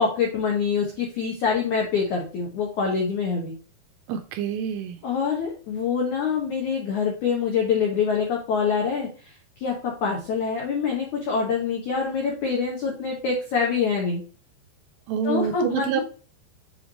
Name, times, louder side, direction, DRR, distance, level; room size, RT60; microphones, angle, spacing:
voice 1, 0.0-3.5 5.0-9.3 9.6-14.2 15.2-16.0, left 5 dB, 85° left, -1 dB, 1.7 m, -25 dB
voice 2, 4.1-5.0 15.1-16.0, right 8 dB, 80° right, 7 dB, 2.5 m, -27 dB
7.6 x 3.2 x 4.1 m, 0.38 s
omnidirectional pair, 5.2 m